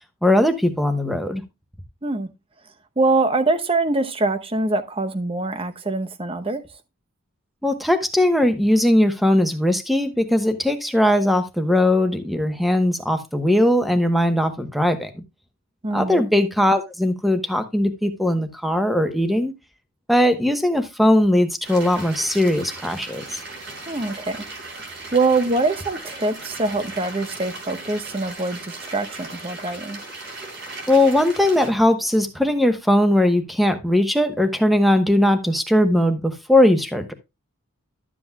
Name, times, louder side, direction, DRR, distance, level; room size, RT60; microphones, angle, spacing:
voice 1, 0.2-1.4 7.6-15.1 15.9-19.5 20.1-23.4 30.9-37.1, left 1 dB, ahead, 1.0 m, -19 dB
voice 2, 3.0-6.6 15.8-16.2 23.9-24.4 25.1-30.0, right 3 dB, 25° right, 0.8 m, -23 dB
sound 1, 21.6-31.7, right 2 dB, 50° right, 3.9 m, -37 dB
12.0 x 7.8 x 2.3 m
head